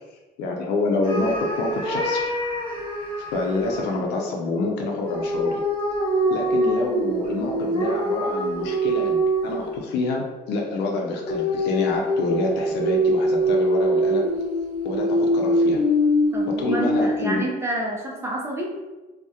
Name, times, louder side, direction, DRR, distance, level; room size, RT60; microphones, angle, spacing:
voice 1, 0.4-2.3 3.3-5.6 6.3-14.3 14.8-15.8 16.6-17.4 18.3-18.4, left 3 dB, 80° left, 0 dB, 0.5 m, -27 dB
sound 1, 1.0-4.0 5.1-9.8 11.3-17.4, equal, 30° left, 0.6 m, -24 dB
voice 2, 16.3-18.7, right 1 dB, 15° right, -2 dB, 0.5 m, -29 dB
2.3 x 2.0 x 2.7 m, 1.1 s
cardioid pair, 110°, 17 cm